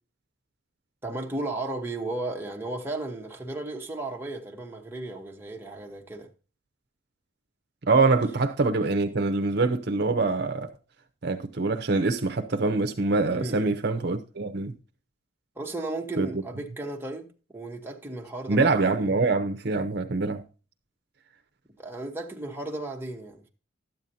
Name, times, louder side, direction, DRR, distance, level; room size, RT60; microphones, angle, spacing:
voice 1, 1.0-6.3 13.3-13.8 15.6-19.0 21.8-23.5, right 2 dB, 10° right, 1.1 m, -35 dB
voice 2, 7.9-10.7 11.2-14.7 16.2-16.3 18.5-20.4, right 3 dB, 55° right, 0.7 m, -24 dB
12.5 x 9.0 x 2.7 m
head